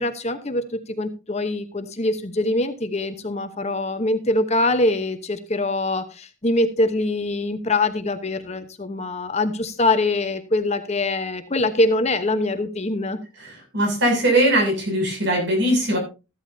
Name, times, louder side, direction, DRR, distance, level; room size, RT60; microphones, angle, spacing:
voice 1, 0.0-13.2, left 2 dB, 35° left, 9 dB, 1.0 m, -23 dB
voice 2, 13.7-16.0, right 1 dB, 60° right, 2 dB, 7.2 m, -20 dB
14.0 x 13.0 x 2.7 m, 0.30 s
head